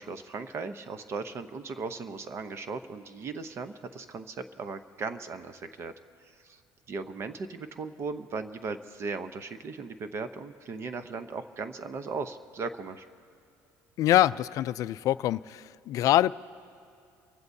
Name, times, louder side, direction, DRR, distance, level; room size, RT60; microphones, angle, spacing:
voice 1, 0.0-5.9 6.2-6.6 6.9-13.1, right 4 dB, 40° right, 10 dB, 0.8 m, -37 dB
voice 2, 14.0-16.3, left 13 dB, 60° left, 16 dB, 0.4 m, -24 dB
29.0 x 15.5 x 2.7 m, 2.5 s
cardioid pair, 120°, 7 cm